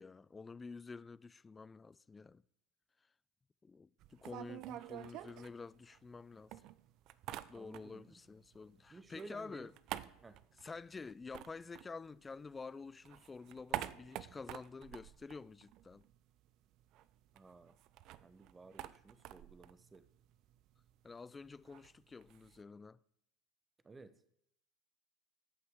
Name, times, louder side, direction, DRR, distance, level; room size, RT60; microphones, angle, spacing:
voice 1, 0.0-2.4 3.6-6.5 7.5-9.7 10.6-16.0 21.0-23.0, left 4 dB, 20° left, 0.3 m, -49 dB
sound 1, 4.0-6.2 6.5-8.1 8.4-12.6 12.9-16.2 16.4-16.5 16.8-22.6, right 13 dB, 55° right, 0.4 m, -48 dB
voice 2, 7.5-8.2 8.9-9.7 10.2-10.4 17.3-17.8 18.2-20.0 23.8-24.1, right 3 dB, 20° right, 0.7 m, -55 dB
15.0 x 5.6 x 3.5 m
hypercardioid pair, 80°, 0 cm